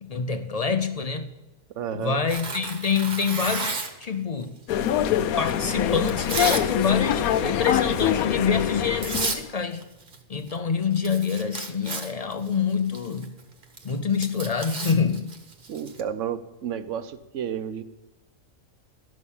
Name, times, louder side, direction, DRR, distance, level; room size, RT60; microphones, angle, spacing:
voice 1, 0.0-1.3 1.9-4.5 5.4-9.8 10.3-13.3 13.8-15.3, left 6 dB, 55° left, 0.4 m, -26 dB
voice 2, 1.7-2.2 15.7-17.8, right 8 dB, 65° right, 1.0 m, -31 dB
Tearing, 2.3-4.1 4.8-6.7 7.0-7.3 7.7-8.0 8.7-8.8 9.0-9.4 9.7-10.6 10.8-16.0, right 3 dB, 40° right, 1.2 m, -33 dB
sound 1, 4.7-9.4, left 9 dB, 90° left, 1.1 m, -24 dB
12.5 x 6.3 x 7.1 m
omnidirectional pair, 1.5 m